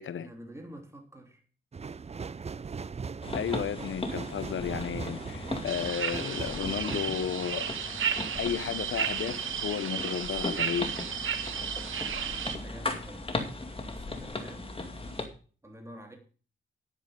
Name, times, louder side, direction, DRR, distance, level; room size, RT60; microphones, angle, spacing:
voice 1, 0.1-1.5 11.7-12.0 12.3-13.3 13.8-14.8 15.6-16.2, equal, 15° right, 3.3 m, -48 dB
sound 1, 1.7-8.3 8.7-8.8, right 5 dB, 30° right, 0.6 m, -40 dB
sound 2, 3.2-15.3, left 2 dB, 30° left, 2.4 m, -38 dB
voice 2, 3.3-7.9 8.4-11.0, left 8 dB, 80° left, 0.8 m, -33 dB
sound 3, 5.7-12.6, right 8 dB, 90° right, 1.3 m, -33 dB
10.0 x 10.0 x 5.2 m
wide cardioid pair, 95°, 20 cm